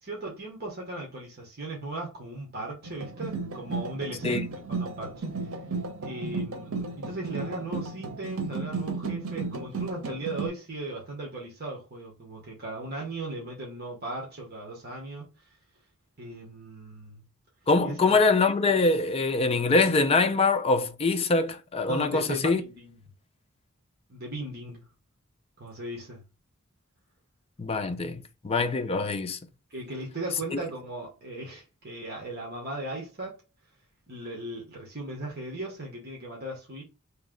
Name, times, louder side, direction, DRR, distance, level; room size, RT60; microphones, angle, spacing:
voice 1, 0.0-4.4 4.7-5.6 6.0-15.3 16.2-17.2 17.8-18.2 21.8-22.9 24.1-24.8 25.6-26.2 29.7-33.3 34.1-36.8, right 2 dB, 50° right, 1.1 m, -37 dB
sound 1, 2.8-10.5, right 4 dB, 85° right, 0.8 m, -34 dB
voice 2, 17.7-22.6 27.6-29.4 30.5-30.6, left 3 dB, 30° left, 0.4 m, -24 dB
3.1 x 3.0 x 3.7 m
head